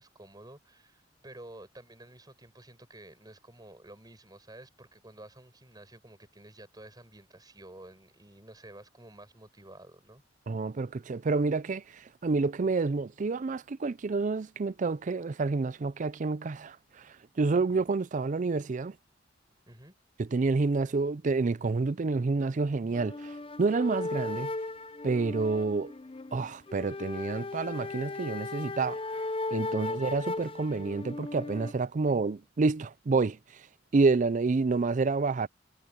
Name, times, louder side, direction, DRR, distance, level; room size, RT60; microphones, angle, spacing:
voice 1, 0.0-10.2 17.7-17.9 19.7-19.9 29.8-30.0, right 1 dB, 20° right, 5.4 m, -51 dB
voice 2, 10.5-11.8 12.2-16.8 17.4-18.9 20.2-24.5 25.0-25.9 26.3-29.0 29.5-33.4 33.9-35.5, right 3 dB, 40° right, 0.4 m, -28 dB
sound 1, 22.9-31.7, left 2 dB, 30° left, 0.6 m, -37 dB
head